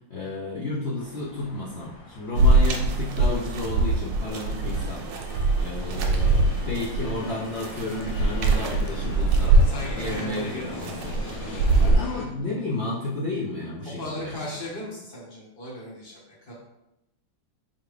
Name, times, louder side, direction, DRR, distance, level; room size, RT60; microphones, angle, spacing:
voice 1, 0.1-5.0 5.6-9.6 9.9-11.1 11.8-14.3, left 2 dB, 65° left, -8 dB, 0.6 m, -32 dB
sound 1, 1.0-12.3, left 3 dB, 80° left, 1.6 m, -42 dB
sound 2, 2.4-11.9, right 2 dB, 75° right, 1.2 m, -23 dB
voice 2, 9.5-10.9 13.8-16.5, left 1 dB, 35° left, -6 dB, 1.2 m, -37 dB
4.4 x 2.8 x 3.2 m, 0.89 s
omnidirectional pair, 2.1 m